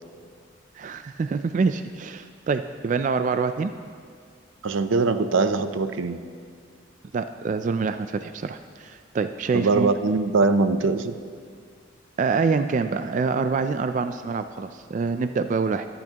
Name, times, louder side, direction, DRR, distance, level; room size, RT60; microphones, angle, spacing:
voice 1, 0.8-3.7 7.1-9.9 12.2-15.9, right 4 dB, 40° right, 9 dB, 0.3 m, -26 dB
voice 2, 4.6-6.2 9.5-11.1, right 3 dB, 90° right, 10 dB, 0.5 m, -22 dB
22.5 x 8.5 x 2.9 m, 2.1 s
head